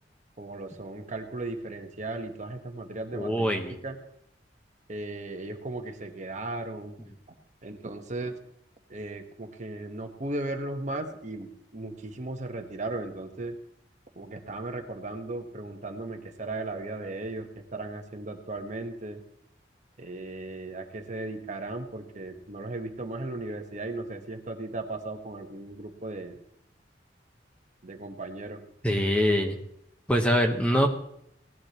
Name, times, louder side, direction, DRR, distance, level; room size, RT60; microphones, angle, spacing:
voice 1, 0.4-4.0 4.9-7.0 7.6-8.4 8.9-13.5 14.2-19.2 20.0-26.4 27.8-28.6, right 2 dB, 40° right, 4 dB, 1.2 m, -36 dB
voice 2, 3.1-3.8 28.8-29.6 30.1-30.9, equal, 5° left, 3 dB, 1.1 m, -24 dB
18.5 x 11.5 x 3.0 m, 0.73 s
head